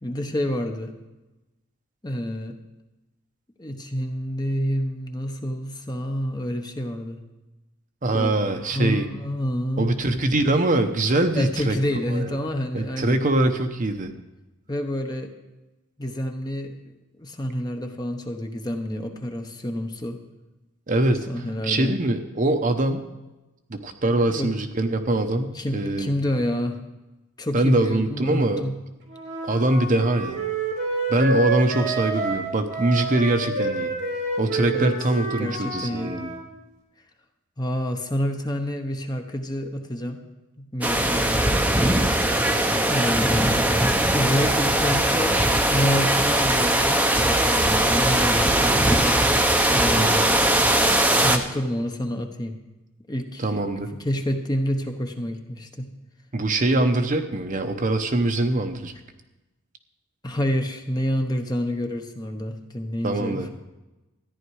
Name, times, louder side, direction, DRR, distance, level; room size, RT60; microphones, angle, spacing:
voice 1, 0.0-0.9 2.0-2.6 3.6-7.2 8.1-9.9 11.4-13.2 14.7-15.3 16.0-16.7 17.2-20.2 21.3-21.9 24.2-24.5 25.5-26.8 27.4-28.7 34.7-34.9 35.4-36.2 37.6-40.2 40.6-42.2 42.9-43.5 44.1-49.2 49.7-50.3 51.2-52.5 53.1-53.5 53.9-55.9 60.2-63.5, equal, 20° left, 4 dB, 0.9 m, -28 dB
voice 2, 8.0-9.1 9.8-11.8 12.1-12.3 12.7-14.1 20.9-23.1 23.7-26.1 27.5-28.6 29.4-30.4 31.1-33.9 34.4-36.3 50.0-50.2 53.4-53.9 56.3-58.9 63.0-63.5, right 2 dB, 40° right, 7 dB, 0.8 m, -23 dB
Wind instrument woodwind instrument, 29.1-36.4, right 3 dB, 55° right, 3.3 m, -28 dB
sound 1, 40.8-51.4, right 1 dB, 5° right, 0.7 m, -20 dB
14.0 x 10.0 x 4.7 m, 1.1 s
head